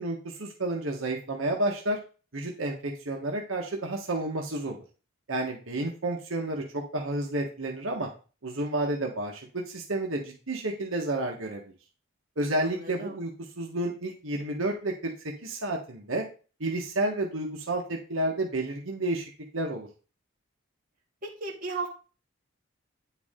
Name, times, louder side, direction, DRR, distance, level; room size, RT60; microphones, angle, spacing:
voice 1, 0.0-2.0 2.3-4.8 5.3-8.1 8.4-11.6 12.4-13.3 13.6-15.1 15.4-16.2 16.6-19.3 19.5-19.9, right 1 dB, 90° right, 0 dB, 1.4 m, -30 dB
voice 2, 12.6-13.2 21.2-21.9, right 3 dB, 45° right, -3 dB, 2.5 m, -35 dB
9.4 x 4.8 x 3.7 m, 0.36 s
head